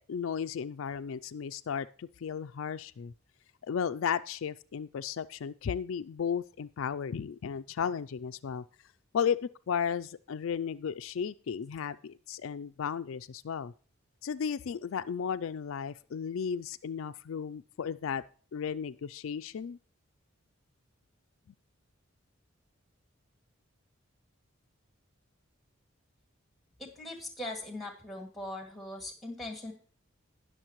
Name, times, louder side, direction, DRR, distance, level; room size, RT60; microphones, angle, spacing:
voice 1, 0.0-3.1 3.6-8.6 9.1-13.7 14.2-18.2 18.5-19.8, left 7 dB, 70° left, 12 dB, 0.4 m, -34 dB
voice 2, 26.8-29.7, left 1 dB, ahead, 2 dB, 2.1 m, -40 dB
19.0 x 6.5 x 3.0 m, 0.41 s
head